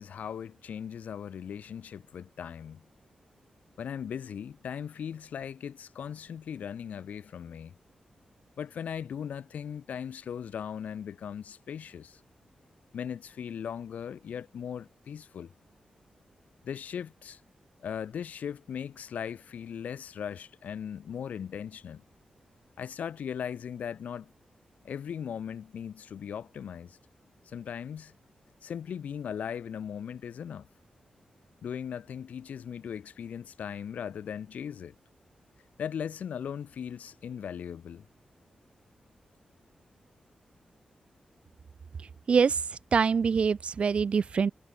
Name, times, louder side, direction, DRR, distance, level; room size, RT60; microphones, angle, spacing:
voice 1, 0.0-2.8 3.8-7.7 8.6-12.2 12.9-15.5 16.6-17.4 17.8-22.0 22.8-24.3 24.8-27.0 27.5-28.1 28.6-30.7 31.6-34.9 35.8-38.0, left 8 dB, 90° left, 0.7 m, -38 dB
voice 2, 42.3-42.6 42.9-44.5, right 6 dB, 50° right, 0.3 m, -24 dB
wide cardioid pair, 140°, 3 cm